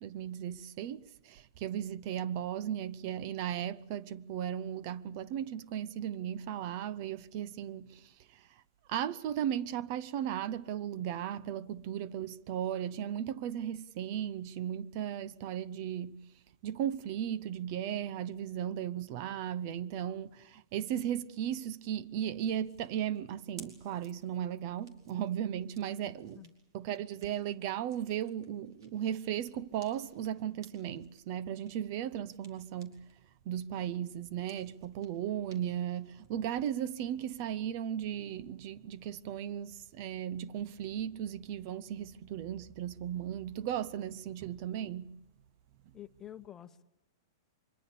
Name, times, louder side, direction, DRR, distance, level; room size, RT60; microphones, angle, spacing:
voice 1, 0.0-8.6 8.9-16.3 16.6-26.5 26.7-33.1 33.5-45.2, right 10 dB, 50° right, 0.8 m, -36 dB
sound 1, 22.4-33.2 33.5-36.7, right 4 dB, 75° right, 4.8 m, -61 dB
voice 2, 45.9-46.8, left 11 dB, 20° left, 1.0 m, -48 dB
24.5 x 22.5 x 6.8 m
hypercardioid pair, 135°, 2 cm